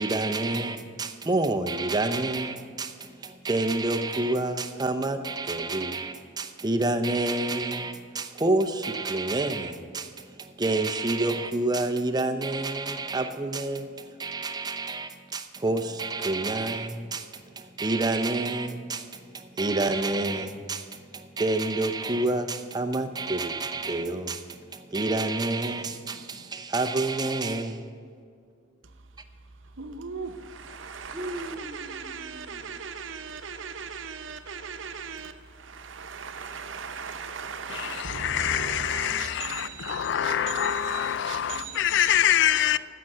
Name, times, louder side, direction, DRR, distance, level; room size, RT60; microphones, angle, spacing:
voice 1, 0.0-27.8 30.3-30.5 31.1-32.7 38.5-38.6 38.9-40.0, right 2 dB, 20° right, 0.6 m, -29 dB
voice 2, 29.8-40.6 40.9-41.8, right 5 dB, 65° right, 0.9 m, -38 dB
voice 3, 37.7-42.8, left 10 dB, 60° left, 0.4 m, -25 dB
11.5 x 7.7 x 7.8 m
head